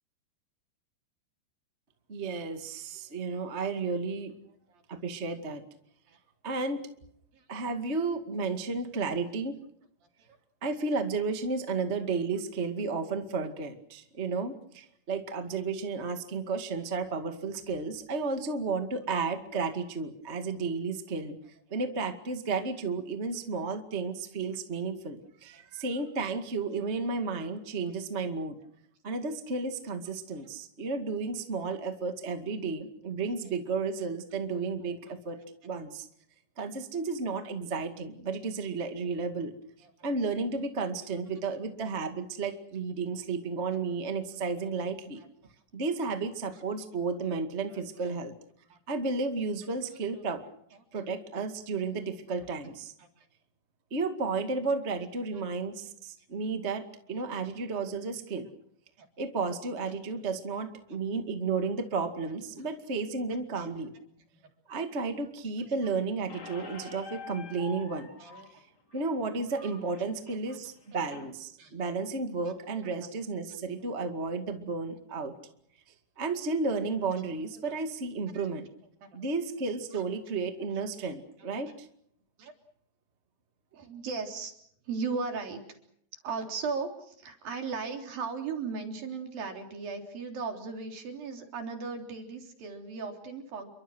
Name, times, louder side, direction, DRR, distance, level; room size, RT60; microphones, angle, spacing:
voice 1, 2.1-4.3 4.9-5.6 6.4-6.9 7.5-9.6 10.6-21.4 21.7-28.6 29.0-35.4 35.6-36.1 36.6-39.5 40.0-45.2 45.7-48.3 48.9-50.4 50.9-52.9 53.9-58.5 59.2-63.9 64.7-68.1 68.9-75.3 76.2-78.7 79.1-81.9, right 4 dB, 35° right, 6 dB, 1.0 m, -33 dB
voice 2, 47.7-48.1 48.7-48.8 50.1-50.2 53.0-53.2 55.3-55.4 57.1-57.4 59.0-59.1 62.6-62.7 63.6-63.7 66.4-66.7 68.2-68.5 69.6-69.7 70.3-70.6 71.6-71.7 72.5-73.1 78.3-78.5 79.0-79.2 79.9-80.0 81.0-81.1 82.4-82.5 83.7-84.5 84.8-85.6 86.2-93.7, right 4 dB, 55° right, 3 dB, 5.0 m, -38 dB
Squeak, 66.3-71.3, left 3 dB, 30° left, 2.5 m, -47 dB
29.5 x 24.0 x 6.3 m, 0.68 s
omnidirectional pair, 5.0 m